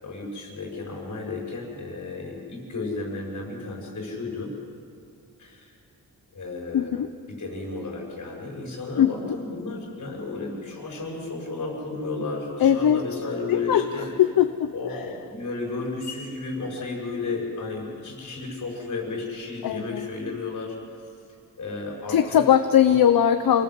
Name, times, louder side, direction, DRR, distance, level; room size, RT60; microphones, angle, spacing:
voice 1, 0.0-4.6 5.4-5.7 6.3-6.9 7.3-14.1 14.7-20.8 21.6-22.4 22.9-23.0, left 3 dB, 55° left, -1 dB, 6.6 m, -33 dB
voice 2, 6.7-7.1 9.0-9.1 12.6-13.0 13.5-13.8 14.2-14.7 19.6-20.1 22.1-23.6, left 9 dB, 75° left, 8 dB, 1.0 m, -20 dB
28.5 x 18.5 x 7.8 m, 2.5 s
wide cardioid pair, 175°, 36 cm